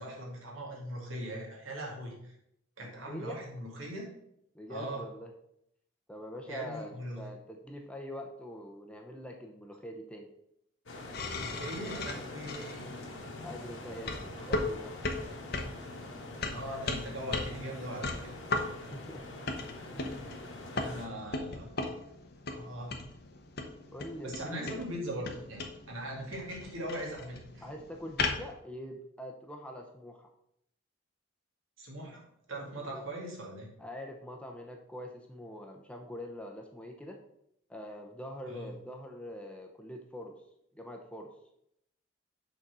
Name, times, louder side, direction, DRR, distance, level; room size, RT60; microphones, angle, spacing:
voice 1, 0.0-2.3 2.8-4.0 4.7-5.0 6.5-7.2 11.3-12.9 14.4-14.5 16.5-18.3 20.7-21.7 22.5-23.0 24.2-27.6 31.8-32.2 32.5-33.7 38.5-38.7, right 1 dB, 80° right, -2 dB, 2.3 m, -40 dB
voice 2, 2.8-3.4 4.5-5.3 6.1-10.3 13.4-15.0 18.7-19.2 19.9-20.1 23.9-24.8 27.6-30.3 32.8-33.1 33.8-37.2 37.7-40.4 40.7-41.3, equal, 5° left, 2 dB, 0.6 m, -44 dB
sound 1, 10.9-21.1, left 2 dB, 75° left, 1.5 m, -45 dB
sound 2, 11.1-28.5, left 3 dB, 50° left, 0.8 m, -38 dB
6.5 x 4.1 x 6.1 m, 0.76 s
head